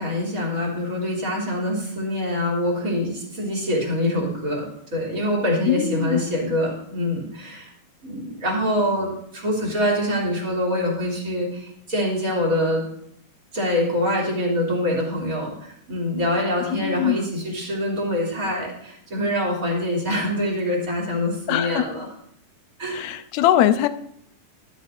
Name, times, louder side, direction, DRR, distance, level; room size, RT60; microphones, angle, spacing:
voice 1, 0.0-7.7 8.0-12.8 13.5-22.1 22.8-23.1, left 1 dB, 25° right, -3 dB, 3.2 m, -25 dB
voice 2, 5.7-6.2 16.7-17.2 21.5-21.9 22.9-23.9, left 11 dB, 85° left, 10 dB, 1.6 m, -21 dB
12.5 x 12.0 x 2.7 m, 0.71 s
omnidirectional pair, 4.0 m